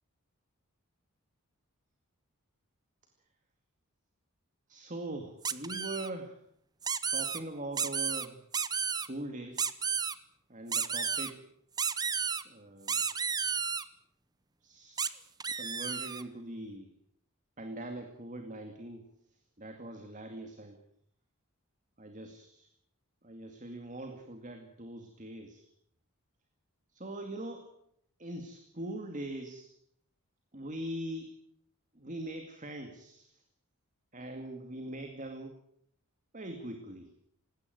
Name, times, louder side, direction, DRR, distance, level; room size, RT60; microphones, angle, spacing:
voice 1, 4.7-6.3 7.1-8.4 8.9-9.7 10.5-11.4 12.4-13.0 14.6-15.2 15.6-16.9 17.6-19.1 19.6-20.8 22.0-22.7 23.2-25.7 26.9-27.7 28.2-29.7 30.5-31.3 31.9-33.4 34.1-35.6 36.3-37.1, right 1 dB, 35° right, 5 dB, 2.3 m, -42 dB
sound 1, 5.4-6.1 6.8-7.4 7.8-8.3 8.5-9.1 9.6-10.1 10.7-11.3 11.8-12.4 12.9-13.8 15.0-15.1 15.4-16.2, right 6 dB, 15° right, 0.8 m, -32 dB
19.5 x 17.5 x 9.5 m, 0.72 s
head